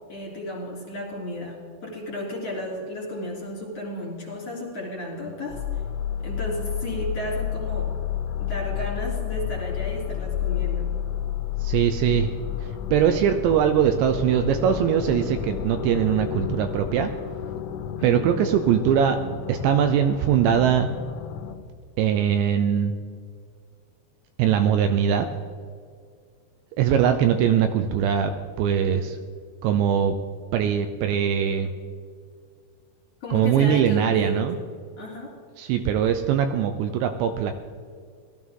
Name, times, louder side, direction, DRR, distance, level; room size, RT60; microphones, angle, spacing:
voice 1, 0.1-5.6 6.2-7.9 8.4-10.9 18.0-18.5 33.2-34.5 35.0-35.3, equal, 35° left, -4 dB, 4.0 m, -33 dB
sound 1, 5.5-21.6, left 10 dB, 85° left, 3.3 m, -31 dB
voice 2, 11.6-12.3 12.6-17.1 18.0-19.2 19.5-20.9 22.0-23.0 24.4-25.3 26.8-28.3 28.6-29.2 29.6-30.2 30.5-31.7 33.3-34.6 35.6-37.7, right 8 dB, 80° right, 7 dB, 2.7 m, -21 dB
18.5 x 13.5 x 3.7 m, 2.1 s
omnidirectional pair, 5.5 m